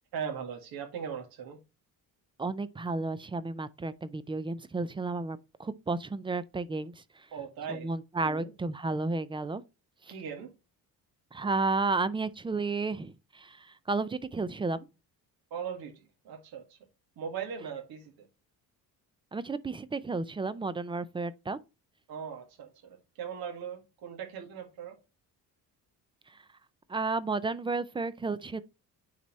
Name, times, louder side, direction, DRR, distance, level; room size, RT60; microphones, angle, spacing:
voice 1, 0.1-1.6 7.3-7.9 8.2-8.5 10.1-10.5 15.5-16.8 17.2-18.3 22.1-25.0, right 7 dB, 75° right, 2.0 m, -39 dB
voice 2, 2.4-6.9 7.8-9.6 11.3-14.8 19.3-21.6 26.9-28.6, right 3 dB, 15° right, 0.3 m, -32 dB
9.4 x 4.2 x 3.0 m
cardioid pair, 160°, 37 cm